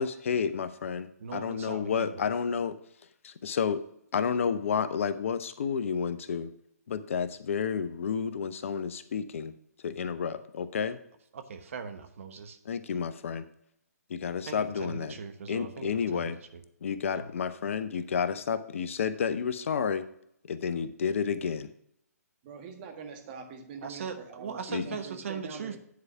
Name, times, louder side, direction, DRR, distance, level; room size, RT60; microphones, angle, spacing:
voice 1, 0.0-2.8 3.4-3.8 4.1-6.5 6.9-9.5 9.8-11.0 12.7-13.5 14.1-15.1 15.5-16.4 16.8-20.0 20.5-21.7 24.7-24.8, left 6 dB, 50° left, 12 dB, 0.7 m, -30 dB
voice 2, 1.2-2.2 11.3-12.6 14.5-16.6 17.1-17.3 23.8-25.8, right 5 dB, 55° right, 8 dB, 1.1 m, -39 dB
voice 3, 22.4-25.8, right 6 dB, 35° right, 4 dB, 1.6 m, -44 dB
9.6 x 4.8 x 5.7 m, 0.72 s
figure-of-eight pair, 135°, 9 cm